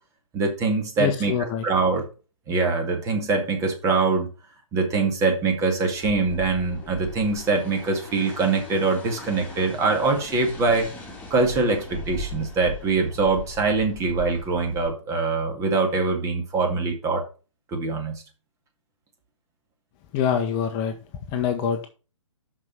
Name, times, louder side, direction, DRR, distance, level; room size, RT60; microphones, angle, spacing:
voice 1, 0.3-1.3 1.6-2.0 2.5-4.3 4.7-10.9 11.3-17.2 17.7-18.2, right 3 dB, 20° right, 4 dB, 2.1 m, -23 dB
voice 2, 1.0-1.7 20.1-21.0 21.3-21.9, left 8 dB, 25° left, 5 dB, 1.1 m, -25 dB
sound 1, 5.9-14.9, left 2 dB, 10° left, 2.5 m, -39 dB
6.2 x 6.2 x 6.0 m, 0.34 s
figure-of-eight pair, 130°, 16 cm